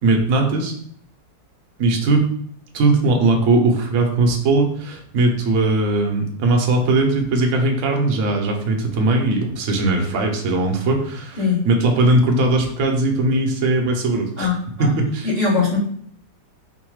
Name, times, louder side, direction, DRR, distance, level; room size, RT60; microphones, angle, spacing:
voice 1, 0.0-0.7 1.8-2.2 2.7-11.4 11.6-14.5 14.8-15.3, right 2 dB, 55° right, 2 dB, 0.9 m, -19 dB
voice 2, 11.4-11.7 14.4-14.9 15.2-15.8, left 4 dB, 30° left, -7 dB, 1.1 m, -21 dB
3.9 x 2.2 x 4.6 m, 0.64 s
omnidirectional pair, 1.9 m